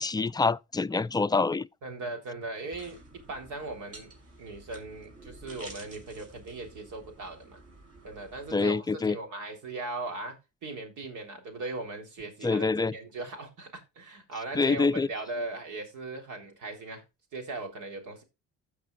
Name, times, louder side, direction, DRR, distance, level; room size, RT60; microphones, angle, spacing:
voice 1, 0.0-1.7 8.5-9.2 12.4-12.9 14.5-15.1, left 4 dB, 15° left, 0.4 m, -26 dB
voice 2, 1.8-4.1 4.4-7.6 8.0-17.0 17.3-18.2, right 2 dB, 80° right, 3.7 m, -39 dB
sound 1, 2.7-8.5, right 2 dB, 50° right, 5.8 m, -50 dB
15.5 x 6.0 x 2.4 m
cardioid pair, 90°, 30 cm